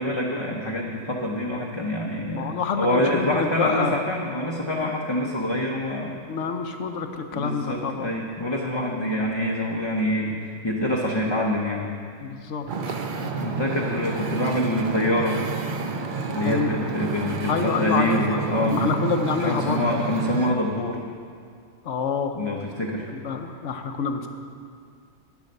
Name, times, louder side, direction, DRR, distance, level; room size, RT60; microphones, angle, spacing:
voice 1, 0.0-6.3 7.3-11.9 13.2-15.4 16.3-21.0 22.3-23.0, left 1 dB, 25° left, -2 dB, 0.6 m, -26 dB
voice 2, 2.3-2.9 3.1-3.9 4.7-4.9 6.3-8.1 12.2-13.0 16.4-16.7 17.5-18.2 18.7-19.8 21.8-22.4 23.1-24.3, left 6 dB, 65° left, 6 dB, 1.0 m, -27 dB
Wind / Ocean, 12.7-20.6, right 4 dB, 50° right, 0.6 m, -30 dB
9.9 x 7.2 x 6.6 m, 2.2 s
omnidirectional pair, 1.4 m